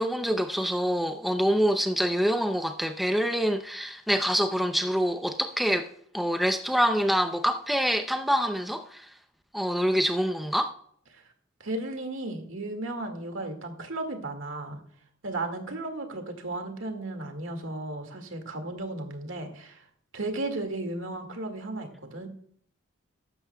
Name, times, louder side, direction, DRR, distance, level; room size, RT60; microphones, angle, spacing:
voice 1, 0.0-5.9 6.1-9.1 9.5-10.7, equal, ahead, 0.5 m, -26 dB
voice 2, 11.6-14.8 15.2-19.8 20.1-22.3, right 2 dB, 70° right, 2.0 m, -35 dB
14.0 x 12.0 x 2.3 m
head